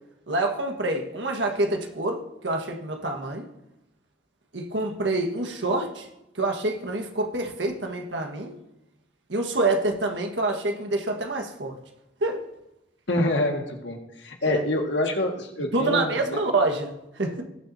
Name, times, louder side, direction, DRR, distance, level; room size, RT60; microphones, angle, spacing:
voice 1, 0.3-3.5 4.5-6.1 6.4-8.5 9.3-11.8 12.2-12.4 14.4-14.6 15.7-16.9 17.2-17.4, right 2 dB, 85° right, 4 dB, 1.6 m, -26 dB
voice 2, 13.1-16.4, left 1 dB, 75° left, 2 dB, 1.9 m, -26 dB
19.5 x 7.1 x 2.8 m, 0.88 s
head